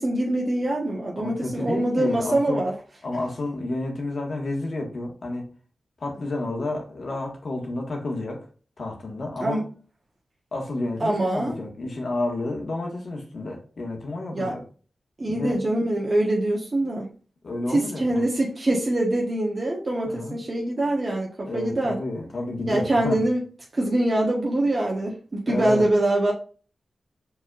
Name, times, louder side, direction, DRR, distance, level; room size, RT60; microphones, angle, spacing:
voice 1, 0.0-2.7 9.4-9.6 11.0-11.6 14.3-14.6 15.2-17.1 17.7-22.0 22.7-23.4 23.7-26.3, right 1 dB, 50° right, -2 dB, 1.3 m, -24 dB
voice 2, 1.2-2.6 3.0-5.5 6.0-8.4 8.8-9.6 10.5-14.6 15.3-15.6 17.4-18.2 20.0-20.4 21.5-23.2 25.5-25.8, left 2 dB, 65° left, 1 dB, 1.6 m, -30 dB
4.9 x 4.0 x 2.5 m, 0.38 s
cardioid pair, 45°, 0 cm